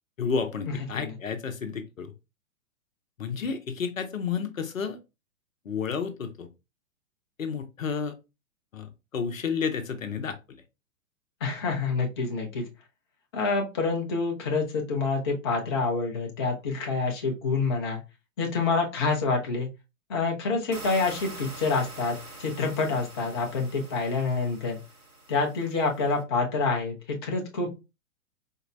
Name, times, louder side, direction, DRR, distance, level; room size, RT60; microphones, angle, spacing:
voice 1, 0.2-2.1 3.2-5.0 5.6-6.5 7.4-8.1 8.7-10.6, left 6 dB, 70° left, 8 dB, 0.7 m, -31 dB
voice 2, 11.4-12.6 13.3-18.0 18.4-19.7 20.1-24.8 25.3-27.7, left 4 dB, 20° left, 1 dB, 0.4 m, -27 dB
sound 1, 20.7-26.2, right 2 dB, 90° right, 1.0 m, -45 dB
4.3 x 2.0 x 2.5 m, 0.26 s
figure-of-eight pair, 115°, 41 cm